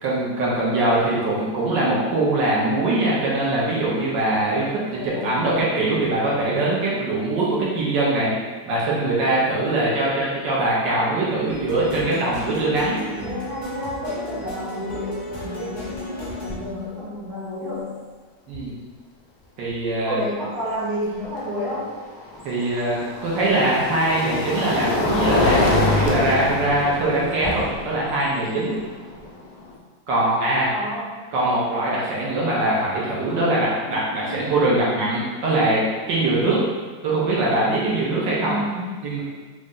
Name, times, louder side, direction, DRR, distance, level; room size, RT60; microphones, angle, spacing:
voice 1, 0.0-8.3 8.6-12.9 18.5-18.7 19.6-20.2 22.4-28.7 30.1-30.7 31.3-35.8 36.1-36.6 37.0-38.6 39.0-39.2, right 2 dB, 70° right, -6 dB, 1.4 m, -22 dB
voice 2, 4.9-5.4 9.5-9.9 12.8-18.0 20.1-22.0 30.7-31.2 34.2-34.6 38.3-39.1, equal, 35° right, -8 dB, 1.0 m, -31 dB
sound 1, 11.5-16.6, equal, 35° left, 0.7 m, -34 dB
sound 2, 15.9-16.0 16.3-16.7 18.5-18.6 21.6-29.7, left 2 dB, 70° left, 0.9 m, -25 dB
3.8 x 2.1 x 3.6 m, 1.5 s
omnidirectional pair, 2.1 m